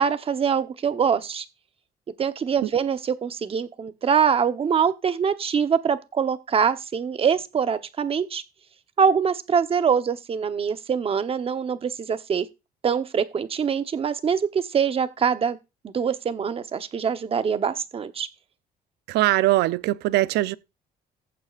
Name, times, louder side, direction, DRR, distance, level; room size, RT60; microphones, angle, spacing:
voice 1, 0.0-1.4 2.2-8.4 9.0-12.5 12.8-15.6 15.8-18.3, right 7 dB, 35° right, 0.9 m, -24 dB
voice 2, 19.1-20.6, right 17 dB, 85° right, 0.6 m, -21 dB
14.5 x 8.4 x 2.5 m
cardioid pair, 110°, 17 cm